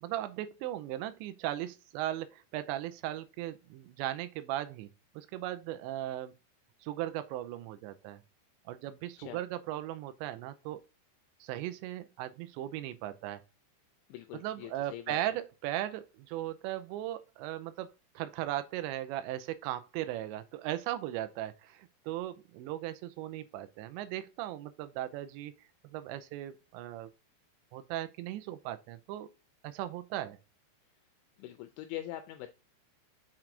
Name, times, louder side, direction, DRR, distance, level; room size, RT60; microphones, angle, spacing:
voice 1, 0.0-4.9 5.2-6.3 6.8-8.2 8.7-10.8 11.4-13.4 14.4-17.9 18.2-25.5 25.9-27.1 27.7-29.3 29.6-30.4, right 13 dB, 85° right, 2.7 m, -37 dB
voice 2, 14.1-15.2 31.4-32.5, left 13 dB, 80° left, 2.9 m, -43 dB
7.4 x 4.6 x 3.8 m
omnidirectional pair, 5.5 m